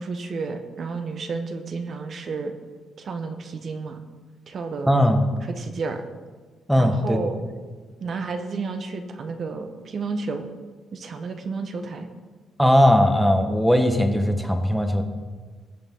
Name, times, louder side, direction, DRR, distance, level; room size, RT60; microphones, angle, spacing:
voice 1, 0.0-2.5 3.0-4.0 4.5-4.9 5.4-6.0 6.8-7.4 8.0-10.5 10.9-12.1, right 4 dB, 55° right, 6 dB, 1.3 m, -31 dB
voice 2, 4.9-5.3 6.7-7.3 12.6-15.0, equal, ahead, 5 dB, 1.4 m, -19 dB
19.5 x 6.8 x 3.9 m, 1.4 s
cardioid pair, 90°, 0 cm